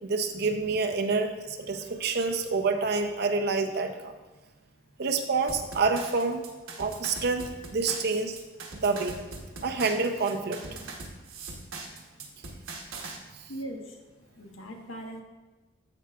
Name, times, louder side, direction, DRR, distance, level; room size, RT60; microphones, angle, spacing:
voice 1, 0.0-4.1 5.0-6.4 6.8-8.4 8.8-9.2 9.6-10.9 13.0-13.1, right 4 dB, 55° right, 7 dB, 0.6 m, -28 dB
sound 1, 5.5-13.2, right 3 dB, 85° right, 1.1 m, -41 dB
voice 2, 13.5-14.0 14.3-15.2, right 1 dB, 90° left, 2 dB, 1.0 m, -39 dB
13.5 x 4.5 x 2.4 m, 1.2 s
head